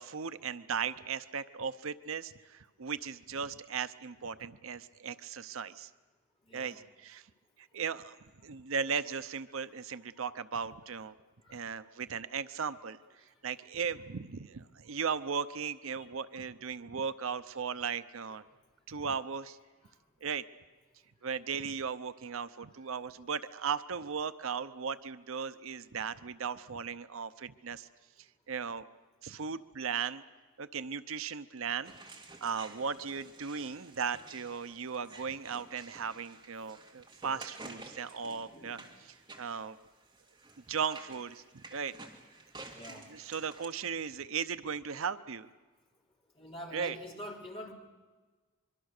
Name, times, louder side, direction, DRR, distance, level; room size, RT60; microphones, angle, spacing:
voice 1, 0.0-5.9 6.5-7.2 7.6-8.2 8.4-11.1 11.5-13.0 13.4-18.4 18.9-19.6 20.2-20.4 21.2-27.9 28.5-28.9 29.2-30.2 30.6-31.9 32.4-38.8 39.4-39.8 40.7-41.4 41.7-41.9 43.1-45.5 46.7-47.0, right 6 dB, 70° right, 13 dB, 0.7 m, -37 dB
voice 2, 6.5-6.8 11.4-11.6 15.9-16.1 38.2-38.8 42.7-43.1 46.4-47.7, equal, 25° left, -1 dB, 3.3 m, -46 dB
sound 1, 31.8-43.7, right 3 dB, 20° right, 2.5 m, -51 dB
24.5 x 23.5 x 6.6 m, 1.3 s
head